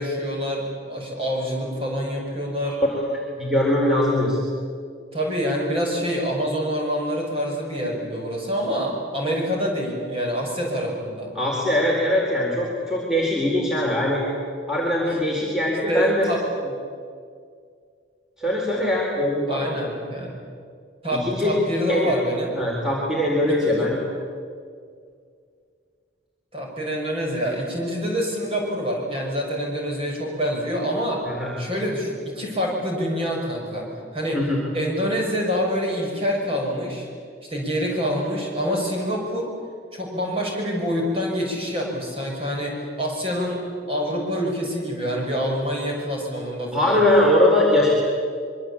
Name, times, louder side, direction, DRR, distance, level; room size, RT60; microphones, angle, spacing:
voice 1, 0.0-2.8 5.1-11.3 15.0-15.1 15.9-16.4 19.5-20.3 21.0-22.5 23.6-23.9 26.5-31.2 31.6-33.9 34.1-34.4 34.7-37.1 37.5-39.5 39.9-43.6 43.9-47.0, equal, 30° right, -1 dB, 6.5 m, -26 dB
voice 2, 2.8-4.4 11.3-14.2 14.7-16.3 18.4-19.7 21.1-21.6 21.9-22.2 22.6-24.0 31.3-31.5 34.3-34.6 46.7-47.9, left 1 dB, 5° right, -3 dB, 4.1 m, -21 dB
26.0 x 23.5 x 8.7 m, 2.2 s
head